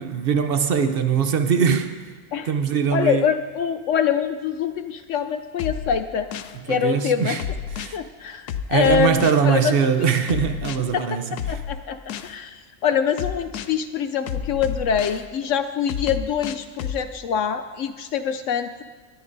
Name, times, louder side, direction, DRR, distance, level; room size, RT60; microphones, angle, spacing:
voice 1, 0.0-1.9 2.5-3.2 6.7-7.4 7.8-8.0 8.7-11.6, right 7 dB, 50° right, 0.7 m, -21 dB
voice 2, 2.9-6.3 6.7-7.4 7.9-9.7 10.9-11.2 11.5-12.0 12.2-18.8, left 7 dB, 65° left, 0.8 m, -24 dB
sound 1, 5.6-6.6 7.4-8.0 8.5-9.4 10.3-10.8 11.4-12.3 13.2-13.7 14.3-15.2 15.9-17.0, left 8 dB, 90° left, 1.2 m, -30 dB
20.5 x 13.5 x 2.7 m
omnidirectional pair, 1.6 m